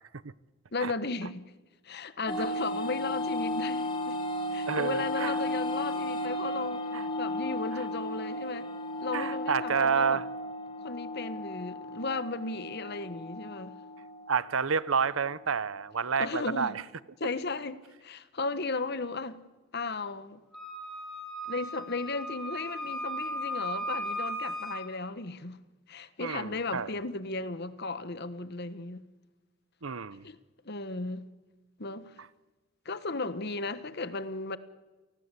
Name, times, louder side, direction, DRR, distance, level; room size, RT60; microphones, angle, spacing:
voice 1, 0.7-1.5 1.8-4.2 4.5-6.8 7.2-8.7 9.0-10.2 10.8-13.7 16.2-16.8 17.2-19.4 19.7-20.4 21.5-25.6 25.9-29.0 30.2-30.4 30.6-31.3 31.8-32.2 32.8-34.6, left 3 dB, 55° left, 1.3 m, -35 dB
sound 1, 2.3-15.3, left 1 dB, 25° left, 3.4 m, -35 dB
voice 2, 4.7-5.4 6.9-7.1 7.7-7.8 9.1-10.3 14.3-16.8 26.2-26.9 29.8-30.2, right 6 dB, 85° right, 0.9 m, -29 dB
Wind instrument woodwind instrument, 20.5-24.9, equal, ahead, 4.0 m, -36 dB
29.0 x 19.0 x 8.4 m
head